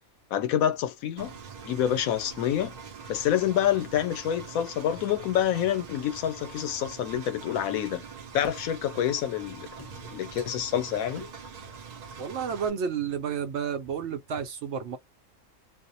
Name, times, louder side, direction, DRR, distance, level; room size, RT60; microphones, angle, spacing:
voice 1, 0.3-1.3 1.6-2.8 3.1-8.0 8.3-11.3, left 10 dB, 90° left, 1.0 m, -27 dB
Engine, 1.2-12.7, right 5 dB, 85° right, 0.3 m, -44 dB
sound 1, 7.1-7.3 8.4-8.7 9.8-9.9 11.2-11.4, equal, 20° left, 0.7 m, -42 dB
voice 2, 12.2-15.0, right 7 dB, 65° right, 0.8 m, -31 dB
2.5 x 2.1 x 2.6 m
omnidirectional pair, 1.4 m